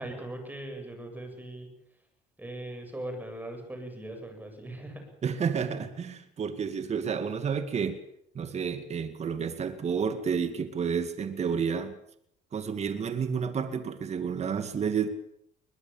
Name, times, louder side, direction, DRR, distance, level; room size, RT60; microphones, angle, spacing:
voice 1, 0.0-1.7 2.4-5.1, right 1 dB, 10° right, 5 dB, 8.0 m, -40 dB
voice 2, 5.2-8.0 8.3-11.9 12.5-15.1, right 6 dB, 40° right, 9 dB, 2.2 m, -30 dB
22.0 x 20.5 x 7.3 m, 0.72 s
cardioid pair, 110°, 17 cm